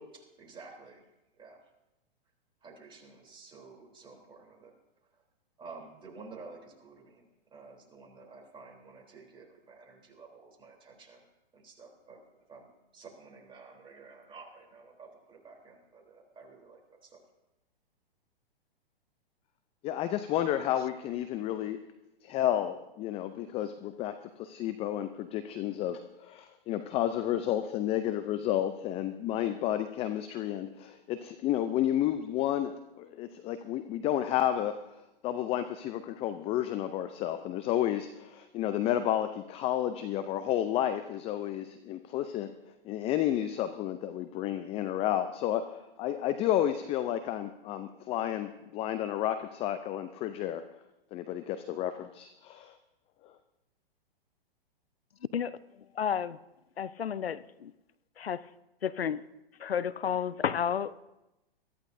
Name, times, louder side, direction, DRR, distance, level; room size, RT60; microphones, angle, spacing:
voice 1, 0.4-1.0 1.4-1.6 2.6-4.7 5.6-7.2 7.5-11.2 11.5-12.2 12.5-17.2, right 4 dB, 15° right, -1 dB, 3.4 m, -51 dB
voice 2, 19.8-21.8 22.2-42.5 42.8-50.6 51.1-52.8 53.2-53.3, left 11 dB, 20° left, 10 dB, 0.5 m, -31 dB
voice 3, 56.0-56.4 56.8-57.4 58.2-58.4 58.8-59.2 59.6-60.9, left 8 dB, 85° left, 17 dB, 0.6 m, -30 dB
22.5 x 14.0 x 2.7 m, 0.94 s
hypercardioid pair, 115°, 30 cm